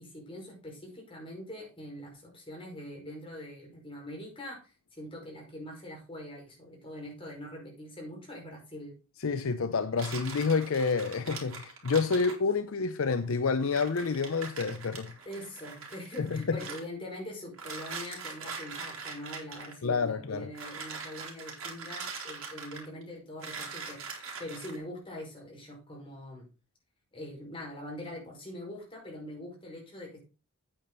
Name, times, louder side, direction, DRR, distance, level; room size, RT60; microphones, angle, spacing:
voice 1, 0.0-9.0 15.2-26.5 27.1-30.2, left 1 dB, 25° left, 5.1 m, -43 dB
voice 2, 9.2-15.2 16.2-16.6 19.8-20.5, left 4 dB, 70° left, 0.6 m, -29 dB
sound 1, 10.0-12.4 13.3-13.4 13.6-16.8 17.5-19.7 20.5-23.0 23.4-24.8, right 5 dB, 70° right, 3.2 m, -42 dB
8.9 x 8.6 x 4.0 m
head